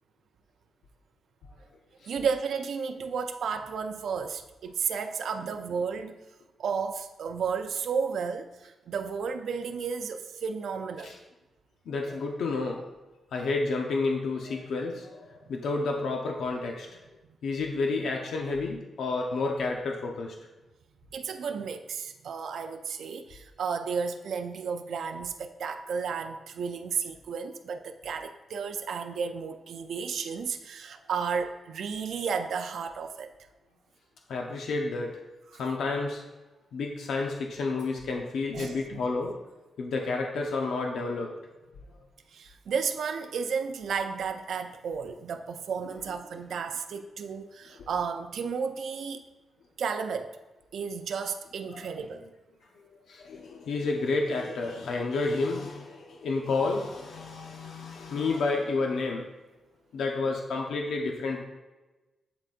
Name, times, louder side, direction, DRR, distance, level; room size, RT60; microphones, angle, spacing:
voice 1, 2.0-6.1 6.6-11.1 21.1-33.3 35.5-35.6 38.5-39.0 42.3-49.2 49.8-50.4 50.7-52.2, right 6 dB, 75° right, 7 dB, 0.4 m, -33 dB
voice 2, 11.9-12.8 13.3-17.0 17.4-20.4 34.3-35.2 35.6-36.2 36.7-39.3 39.8-41.5 47.8-47.9 51.7-51.9 53.1-59.3 59.9-61.4, left 3 dB, 90° left, 1 dB, 0.6 m, -30 dB
11.0 x 3.9 x 2.5 m, 1.1 s
wide cardioid pair, 155°, 0 cm